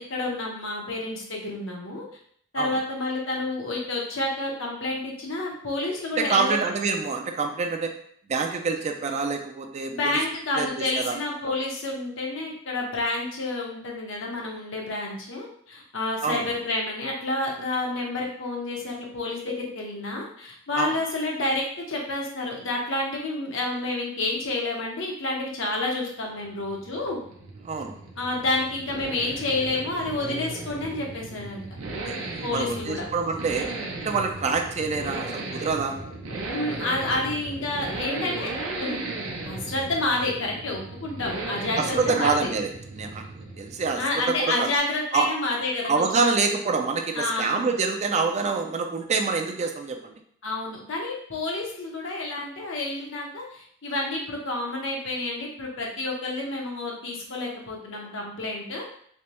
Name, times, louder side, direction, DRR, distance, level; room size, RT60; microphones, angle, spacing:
voice 1, 0.0-2.0 2.5-6.6 9.9-27.2 28.2-31.7 32.4-33.0 36.5-38.5 38.8-39.0 39.4-42.5 44.0-46.4 47.1-47.7 50.4-58.8, left 2 dB, 65° left, -1 dB, 0.9 m, -29 dB
voice 2, 6.2-7.9 8.3-10.2 10.6-11.2 16.2-16.5 20.7-20.9 27.6-28.0 32.0-33.7 34.0-36.0 41.8-44.7 45.1-45.3 45.8-50.2, right 4 dB, 35° right, 4 dB, 0.4 m, -26 dB
sound 1, 26.3-44.3, right 2 dB, 80° right, 0.7 m, -36 dB
3.3 x 3.0 x 3.0 m, 0.63 s
head